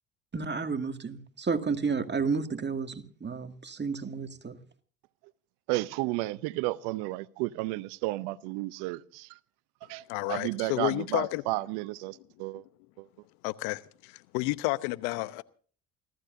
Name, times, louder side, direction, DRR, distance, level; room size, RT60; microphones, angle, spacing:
voice 1, 0.3-4.6, right 5 dB, 25° right, 2.1 m, -31 dB
voice 2, 5.7-9.4 9.9-12.6 13.0-13.1, right 19 dB, 75° right, 0.8 m, -33 dB
voice 3, 10.1-11.4 13.4-15.4, left 21 dB, 75° left, 0.9 m, -31 dB
29.0 x 14.0 x 2.6 m
hypercardioid pair, 65°, 40 cm